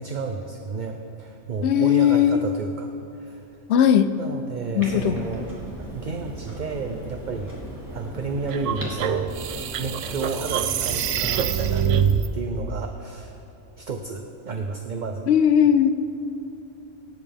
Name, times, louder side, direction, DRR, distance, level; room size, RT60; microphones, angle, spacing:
voice 1, 0.0-3.4 4.2-5.5 5.8-7.6 7.9-9.3 9.8-12.1 12.3-13.4 13.8-15.3, right 4 dB, 45° right, 4 dB, 0.7 m, -31 dB
voice 2, 1.6-2.4 3.7-4.1 4.8-5.1 15.3-15.9, left 9 dB, 65° left, 11 dB, 0.8 m, -18 dB
Clock, 4.8-11.6, equal, 15° right, 2.9 m, -36 dB
sound 1, 8.5-12.3, right 9 dB, 75° right, 0.9 m, -25 dB
26.5 x 9.3 x 3.5 m, 2.8 s
omnidirectional pair, 1.3 m